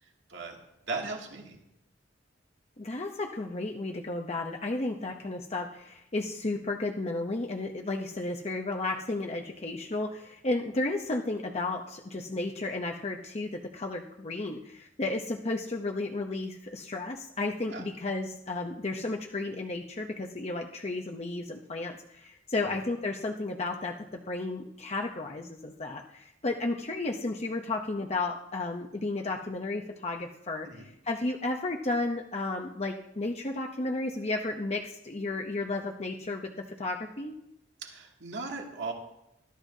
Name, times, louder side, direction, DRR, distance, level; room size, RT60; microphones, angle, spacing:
voice 1, 0.9-1.6 17.6-17.8 30.6-30.9 37.8-38.9, right 3 dB, 70° right, 0 dB, 2.4 m, -37 dB
voice 2, 2.8-37.4, left 2 dB, 35° left, 2 dB, 0.8 m, -33 dB
20.5 x 12.5 x 2.8 m, 0.84 s
head